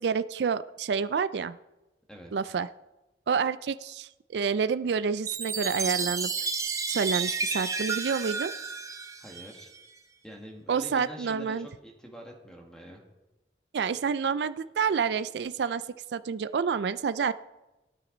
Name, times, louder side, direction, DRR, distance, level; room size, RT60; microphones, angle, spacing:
voice 1, 0.0-1.6 2.3-2.7 3.3-6.3 6.9-8.5 10.7-11.7 13.7-15.8 16.1-17.3, right 6 dB, 75° right, 14 dB, 0.4 m, -28 dB
voice 2, 2.1-2.5 9.2-9.7 10.2-13.0, equal, 5° left, 0 dB, 1.7 m, -45 dB
Chime, 5.3-9.8, right 4 dB, 20° right, 0.7 m, -32 dB
16.0 x 9.2 x 3.9 m, 1.0 s
head